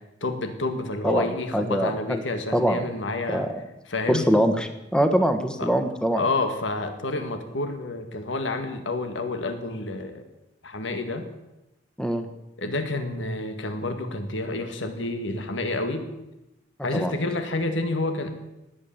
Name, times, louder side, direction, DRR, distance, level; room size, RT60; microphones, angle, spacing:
voice 1, 0.2-3.4 3.9-4.3 5.6-5.7 6.1-10.3 10.6-11.3 12.6-16.1 16.8-18.3, left 2 dB, 85° left, 7 dB, 1.9 m, -29 dB
voice 2, 1.0-2.2 2.5-2.8 3.3-3.5 4.1-6.2 12.0-12.3 16.9-17.1, equal, 5° left, 8 dB, 1.3 m, -23 dB
19.5 x 8.4 x 8.8 m, 0.96 s
head